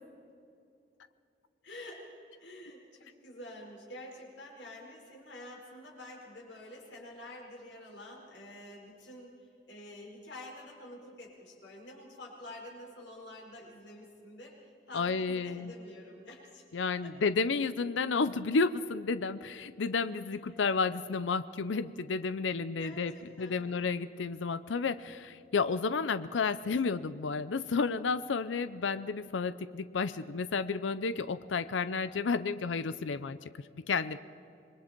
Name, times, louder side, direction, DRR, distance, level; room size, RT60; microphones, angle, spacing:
voice 1, 1.6-2.1 2.4-16.6 17.0-17.2 20.1-20.6 22.7-23.9, left 1 dB, 70° left, -1 dB, 5.1 m, -48 dB
voice 2, 14.9-15.7 16.7-23.1 23.4-33.5 33.9-34.2, left 4 dB, 85° left, 14 dB, 0.5 m, -31 dB
26.5 x 21.5 x 4.5 m, 2.6 s
head